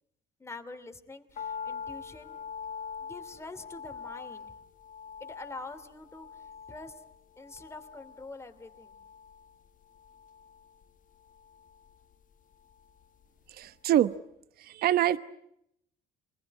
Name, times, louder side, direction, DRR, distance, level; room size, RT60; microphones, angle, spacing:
voice 1, 0.4-2.4 3.0-4.5 5.2-7.0 7.4-9.0, left 3 dB, 15° left, 7 dB, 2.8 m, -45 dB
sound 1, 1.3-13.6 13.9-14.0, left 6 dB, 50° left, 1.5 m, -44 dB
voice 2, 13.5-14.1 14.6-15.2, right 12 dB, 65° right, 13 dB, 1.0 m, -25 dB
28.0 x 21.0 x 9.8 m, 0.76 s
cardioid pair, 110°, 17 cm